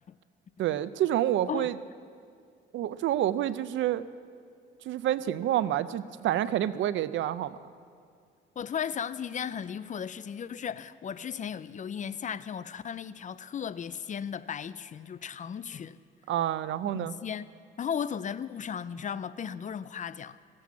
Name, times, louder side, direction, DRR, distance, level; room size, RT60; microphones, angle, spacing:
voice 1, 0.6-1.8 2.7-4.0 4.9-7.6 16.3-17.2, right 12 dB, 75° right, 0.5 m, -28 dB
voice 2, 8.6-16.0 16.8-17.5 17.8-20.4, left 8 dB, 40° left, 0.4 m, -36 dB
16.5 x 7.7 x 7.2 m
cardioid pair, 90°, 20 cm